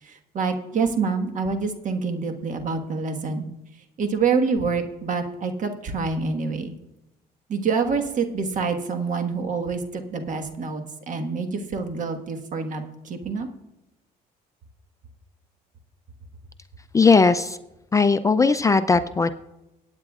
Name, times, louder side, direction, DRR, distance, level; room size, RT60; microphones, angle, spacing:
voice 1, 0.0-3.5 4.0-6.8 7.5-13.5, right 5 dB, 50° right, 6 dB, 1.4 m, -26 dB
voice 2, 16.9-17.6 17.9-19.3, left 4 dB, 20° left, 10 dB, 0.4 m, -18 dB
23.0 x 9.0 x 2.4 m, 0.93 s
cardioid pair, 110°, 17 cm